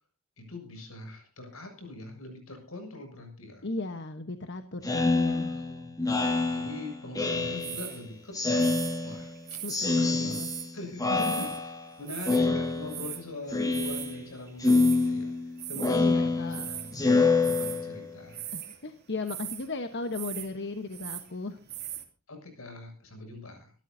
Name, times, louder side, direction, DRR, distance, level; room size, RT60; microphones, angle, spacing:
voice 1, 0.4-3.7 4.9-5.9 6.5-8.7 9.0-9.6 9.9-10.3 10.7-18.5 22.3-23.7, left 2 dB, 80° left, 4 dB, 7.0 m, -43 dB
voice 2, 3.6-5.5 9.6-10.5 11.1-11.5 12.5-12.6 15.9-16.7 18.5-21.6, left 3 dB, 55° left, 7 dB, 1.2 m, -36 dB
Speech synthesizer, 4.8-8.0 8.3-9.4 9.7-10.7 11.0-11.9 12.3-13.2 13.5-14.3 14.6-18.1, left 3 dB, 15° left, 2.0 m, -27 dB
sound 1, 7.6-8.0 8.6-9.8 10.3-10.7 11.1-11.6 11.9-12.4 12.9-13.2 13.7-14.2 14.5-15.1 15.6-16.0 16.5-17.0 17.4-17.9 18.3-18.8 19.3-19.7 20.1-20.5 20.8-21.3 21.7-22.0, right 12 dB, 50° right, 2.9 m, -39 dB
25.0 x 13.0 x 2.8 m, 0.34 s
head